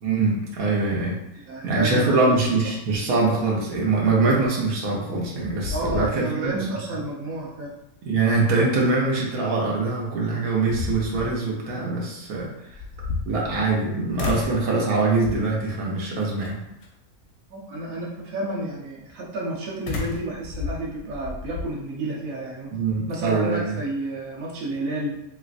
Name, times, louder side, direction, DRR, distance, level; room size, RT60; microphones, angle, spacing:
voice 1, 0.0-1.2 1.6-6.6 8.0-12.5 13.2-16.6 22.7-23.7, right 3 dB, 90° right, -3 dB, 1.3 m, -23 dB
voice 2, 1.5-2.3 5.7-7.7 17.5-22.7 23.1-25.2, right 1 dB, 65° right, -4 dB, 1.2 m, -30 dB
sound 1, 5.2-5.3 5.6-6.6 7.0-7.1 9.8-9.9 10.4-11.4 12.7-13.8 14.2-14.7 15.2-15.6 16.4-16.9 19.9-21.7, left 4 dB, 65° left, 0.7 m, -32 dB
3.1 x 3.1 x 2.5 m, 0.86 s
omnidirectional pair, 1.5 m